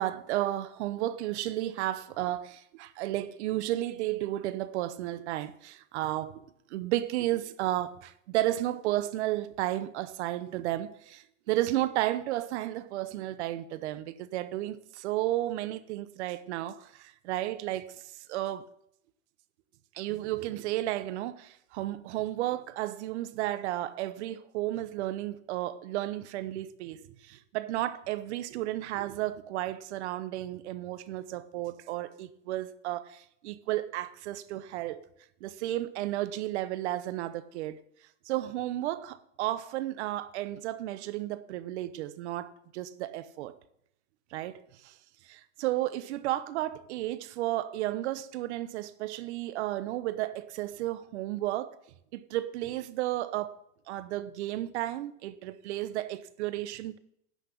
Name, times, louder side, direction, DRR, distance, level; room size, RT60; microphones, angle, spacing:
voice 1, 0.0-18.7 19.9-35.0 35.4-37.8 38.3-43.5 44.3-45.0 45.2-51.8 52.1-53.6 53.9-57.0, right 15 dB, 60° right, 0.9 m, -33 dB
10.0 x 5.9 x 8.3 m
supercardioid pair, 135°, 38 cm